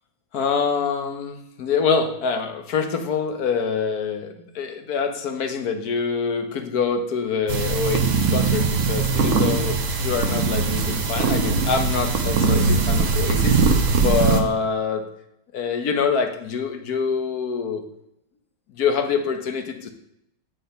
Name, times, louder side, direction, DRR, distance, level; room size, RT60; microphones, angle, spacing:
voice 1, 0.3-15.0 15.5-17.8 18.7-19.9, left 5 dB, 60° left, 7 dB, 1.4 m, -25 dB
sound 1, 7.5-14.4, right 4 dB, 50° right, 1.2 m, -21 dB
8.5 x 5.7 x 5.6 m, 0.80 s
omnidirectional pair, 1.9 m